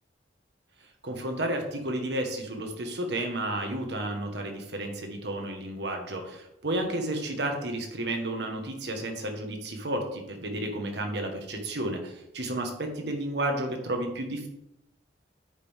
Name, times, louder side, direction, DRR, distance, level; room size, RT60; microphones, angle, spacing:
voice 1, 1.0-14.5, right 1 dB, 70° right, 4 dB, 1.4 m, -32 dB
9.7 x 5.3 x 3.6 m, 0.84 s
head